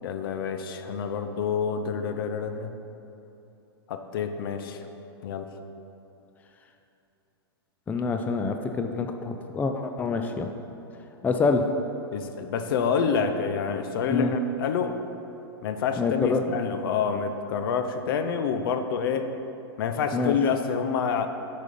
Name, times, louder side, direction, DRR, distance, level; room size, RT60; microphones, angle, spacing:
voice 1, 0.0-2.7 3.9-4.8 5.2-5.5 12.1-14.9 15.6-19.3 19.8-21.3, left 6 dB, 60° left, 8 dB, 0.6 m, -28 dB
voice 2, 7.9-10.5 11.2-11.7 14.1-14.3 16.0-16.5 20.1-20.3, left 4 dB, 10° left, 5 dB, 0.4 m, -26 dB
6.2 x 5.1 x 5.4 m, 2.9 s
hypercardioid pair, 110°, 13 cm